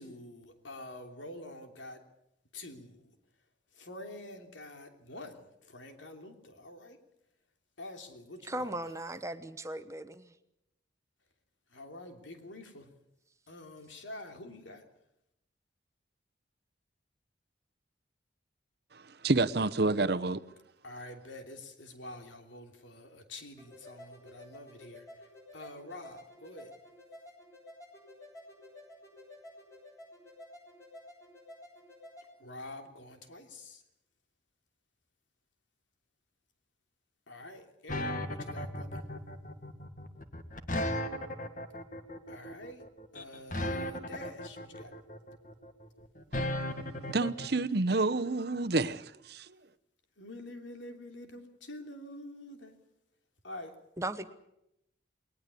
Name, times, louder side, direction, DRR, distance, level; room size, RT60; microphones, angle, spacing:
voice 1, 0.0-2.0 2.5-3.1 3.7-7.0 7.8-8.7 11.7-12.9 13.5-14.8 20.8-26.7 32.4-33.8 37.3-39.0 42.3-42.8 43.1-44.9 50.2-52.8 53.4-53.8, left 1 dB, 80° left, 3.1 m, -47 dB
voice 2, 8.4-10.3 54.0-54.3, right 1 dB, 15° right, 1.0 m, -37 dB
voice 3, 19.2-20.4 47.1-49.5, right 3 dB, 55° right, 0.9 m, -28 dB
sound 1, 23.6-32.3, left 1 dB, 15° left, 7.8 m, -52 dB
sound 2, 37.9-47.5, left 1 dB, 45° left, 1.9 m, -36 dB
20.5 x 19.5 x 8.4 m
head